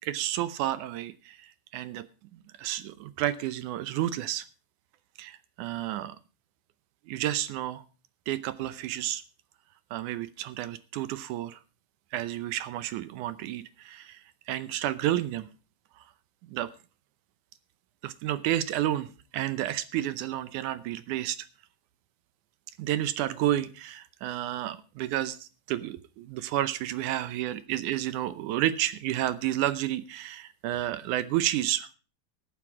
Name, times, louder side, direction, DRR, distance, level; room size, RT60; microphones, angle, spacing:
voice 1, 0.0-2.1 2.6-4.5 5.2-6.2 7.1-7.8 8.3-9.2 9.9-11.6 12.1-14.2 14.5-15.5 16.5-16.7 18.0-21.4 22.8-31.9, right 13 dB, 75° right, 15 dB, 1.9 m, -31 dB
13.5 x 9.8 x 4.8 m, 0.35 s
omnidirectional pair, 4.2 m